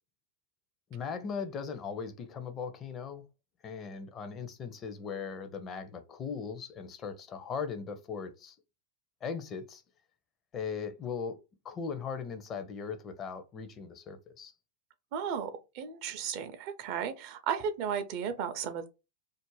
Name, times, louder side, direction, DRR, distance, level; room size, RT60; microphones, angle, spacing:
voice 1, 0.9-3.2 3.6-8.6 9.2-9.8 10.5-11.4 11.6-14.5, left 6 dB, 30° left, 0.5 m, -38 dB
voice 2, 15.1-18.9, right 7 dB, 50° right, 0.4 m, -34 dB
2.4 x 2.0 x 3.1 m
figure-of-eight pair, 90°, 0 cm